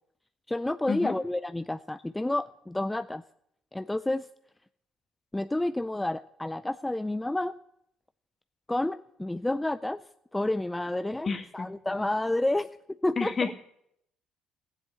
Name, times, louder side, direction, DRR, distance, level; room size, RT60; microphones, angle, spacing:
voice 1, 0.5-3.2 3.7-4.3 5.3-7.5 8.7-10.0 10.3-12.7 13.0-13.5, left 1 dB, 10° left, 10 dB, 0.4 m, -30 dB
voice 2, 11.3-11.7 13.2-13.5, left 5 dB, 40° left, 6 dB, 1.8 m, -30 dB
15.0 x 7.6 x 8.5 m, 0.77 s
supercardioid pair, 65°, 0 cm